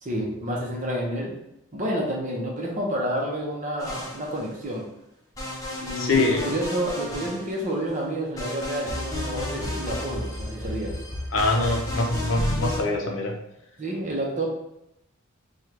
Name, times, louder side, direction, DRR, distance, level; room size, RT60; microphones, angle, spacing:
voice 1, 0.0-1.3 1.7-4.8 5.8-11.0 13.8-14.5, right 1 dB, 35° right, -2 dB, 0.8 m, -29 dB
sound 1, 3.8-4.7 5.4-7.9 8.4-12.8, left 1 dB, 15° left, 0.7 m, -32 dB
voice 2, 6.0-6.5 11.3-13.4, left 2 dB, 60° left, 2 dB, 0.6 m, -24 dB
4.3 x 2.4 x 3.2 m, 0.84 s
head